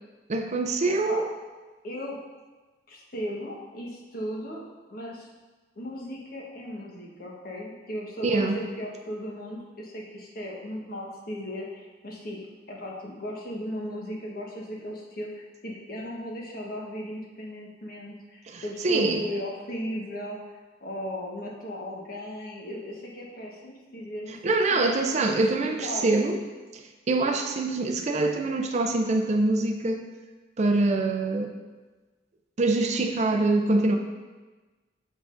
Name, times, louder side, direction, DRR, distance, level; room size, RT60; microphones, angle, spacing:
voice 1, 0.3-1.2 8.2-8.6 18.5-19.2 24.4-26.4 26.7-30.0 30.6-31.5 32.6-34.0, right 2 dB, 40° right, 5 dB, 0.5 m, -24 dB
voice 2, 0.9-1.2 1.8-2.2 2.9-4.6 4.9-5.3 5.8-12.4 12.7-20.4 20.8-24.4 24.7-25.3 25.6-26.0, equal, 60° left, -2 dB, 1.1 m, -36 dB
7.1 x 5.6 x 2.5 m, 1.2 s
head